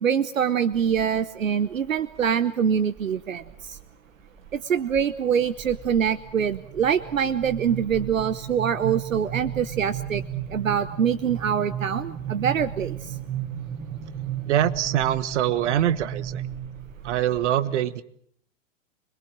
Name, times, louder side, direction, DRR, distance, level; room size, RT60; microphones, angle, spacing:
voice 1, 0.0-3.8 4.5-10.2 10.5-13.2, right 8 dB, 85° right, 15 dB, 1.0 m, -24 dB
sound 1, 0.7-1.3 1.7-2.3 3.0-3.8 4.2-4.6 4.9-17.5, right 10 dB, 30° right, 5.7 m, -35 dB
voice 2, 14.5-16.4 17.0-18.0, right 11 dB, 65° right, 14 dB, 1.5 m, -24 dB
25.5 x 22.0 x 7.5 m, 0.65 s
hypercardioid pair, 100°, 39 cm